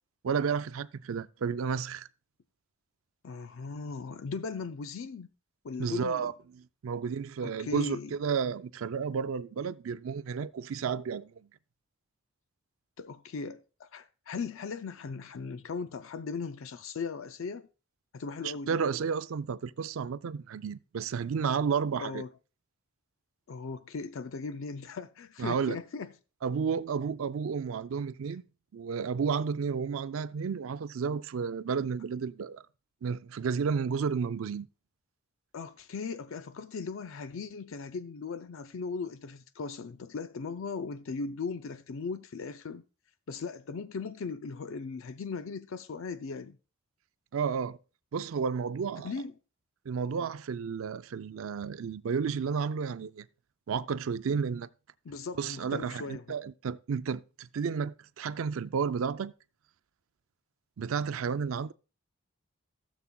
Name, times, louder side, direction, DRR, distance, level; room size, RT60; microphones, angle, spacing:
voice 1, 0.2-2.1 5.8-11.3 18.4-22.2 25.4-25.8 26.4-28.4 28.7-32.6 33.0-34.7 47.3-47.8 48.1-49.1 49.9-53.3 53.7-54.7 55.4-59.3 60.8-61.7, right 6 dB, 70° right, 0.4 m, -32 dB
voice 2, 3.2-5.3 5.6-6.3 7.4-8.1 13.0-17.7 18.1-18.8 22.0-22.3 23.5-26.1 35.5-42.8 43.3-46.6 49.0-49.3 55.0-56.4, left 4 dB, 65° left, 0.4 m, -38 dB
16.0 x 7.2 x 2.3 m
head